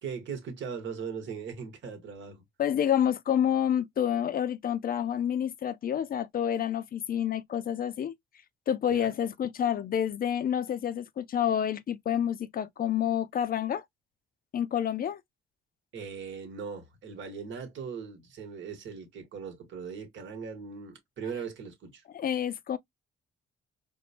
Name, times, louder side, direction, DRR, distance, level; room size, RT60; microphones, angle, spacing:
voice 1, 0.0-2.4 8.9-9.1 15.9-22.0, right 6 dB, 70° right, 1.3 m, -39 dB
voice 2, 2.6-8.1 8.7-13.8 14.5-15.2 22.1-22.8, left 9 dB, 45° left, 0.5 m, -28 dB
4.3 x 2.2 x 2.7 m
cardioid pair, 90°, 20 cm